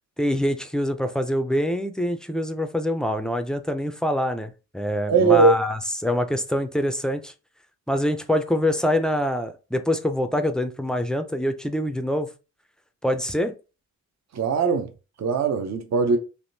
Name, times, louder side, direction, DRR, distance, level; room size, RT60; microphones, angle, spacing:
voice 1, 0.2-7.3 7.9-12.3 13.0-13.5, equal, ahead, 0.3 m, -25 dB
voice 2, 5.1-5.5 14.3-14.9 15.2-16.2, right 4 dB, 60° right, 0.6 m, -20 dB
3.4 x 2.5 x 2.6 m
wide cardioid pair, 120°, 30 cm